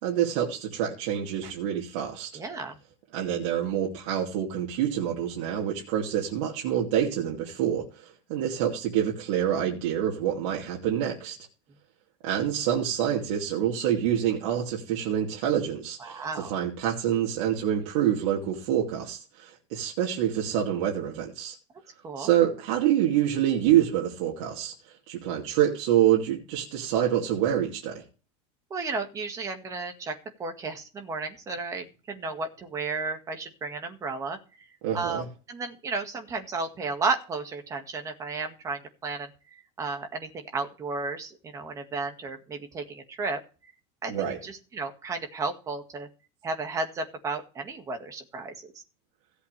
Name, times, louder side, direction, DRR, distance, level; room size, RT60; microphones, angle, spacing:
voice 1, 0.0-2.3 3.1-11.4 12.2-21.5 22.2-24.7 25.1-28.0 34.8-35.3 44.1-44.4, right 10 dB, 75° right, 2.7 m, -26 dB
voice 2, 2.3-2.8 16.0-16.5 22.0-22.3 28.7-34.7 34.9-43.4 44.0-46.1 46.4-48.7, right 3 dB, 20° right, 1.9 m, -33 dB
16.5 x 8.1 x 3.4 m
cardioid pair, 170°, 17 cm